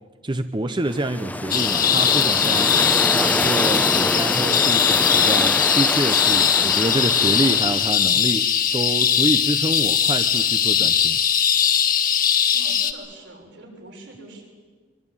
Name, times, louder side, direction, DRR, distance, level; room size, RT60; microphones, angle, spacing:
voice 1, 0.2-2.7 3.1-11.2, right 1 dB, 25° right, 9 dB, 0.8 m, -27 dB
sound 1, 0.8-7.9, left 1 dB, 10° left, 0.9 m, -26 dB
sound 2, 1.5-12.9, left 8 dB, 50° left, 1.5 m, -20 dB
voice 2, 12.5-14.4, right 1 dB, 80° right, -1 dB, 7.0 m, -43 dB
23.5 x 23.0 x 9.0 m, 1.5 s
head